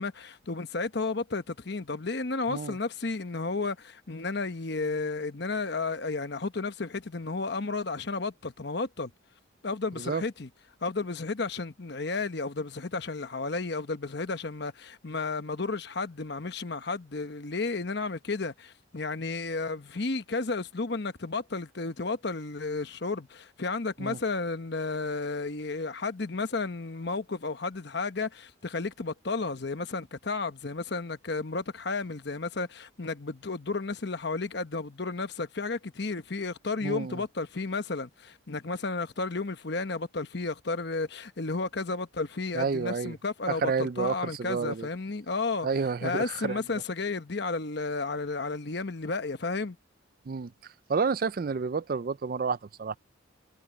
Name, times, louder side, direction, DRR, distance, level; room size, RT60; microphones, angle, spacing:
voice 1, 0.0-9.1 9.6-10.5 10.8-45.7 46.0-49.8, left 3 dB, 55° left, 1.0 m, -32 dB
voice 2, 36.8-37.2 42.5-43.1 43.5-44.9 45.6-46.6 50.3-50.5 50.9-53.0, right 5 dB, 45° right, 0.4 m, -30 dB
head